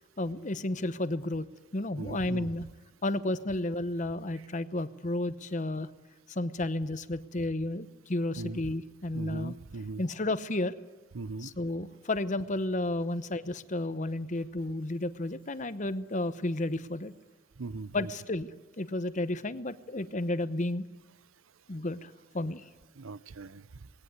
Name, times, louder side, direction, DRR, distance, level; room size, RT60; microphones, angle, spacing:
voice 1, 0.2-1.4 1.7-2.6 3.0-5.9 6.3-9.5 10.0-10.7 11.4-17.1 17.9-18.5 18.8-20.8 21.7-22.6, left 2 dB, 35° left, 13 dB, 0.9 m, -32 dB
voice 2, 2.0-2.6 8.4-8.7 9.1-10.0 11.1-11.5 17.6-18.1 23.0-23.7, right 3 dB, 85° right, 17 dB, 0.7 m, -39 dB
20.5 x 17.5 x 9.4 m, 1.3 s
head